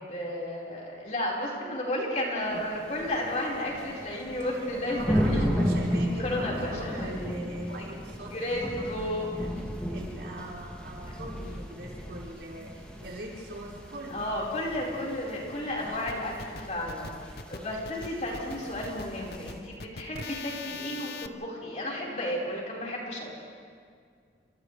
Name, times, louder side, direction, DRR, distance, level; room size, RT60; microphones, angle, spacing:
voice 1, 0.1-5.4 6.2-7.1 7.7-7.8 8.3-9.3 12.9-13.0 14.1-23.3, left 1 dB, 40° left, -3 dB, 5.0 m, -33 dB
sound 1, 2.4-19.5, equal, 5° left, 2.8 m, -35 dB
voice 2, 4.8-9.5 9.9-14.9 15.7-16.1 18.3-18.7 20.7-20.8, right 1 dB, 80° right, -4 dB, 5.6 m, -41 dB
sound 2, 16.1-21.3, left 4 dB, 60° left, 0.9 m, -41 dB
29.5 x 27.0 x 3.4 m, 2.2 s
head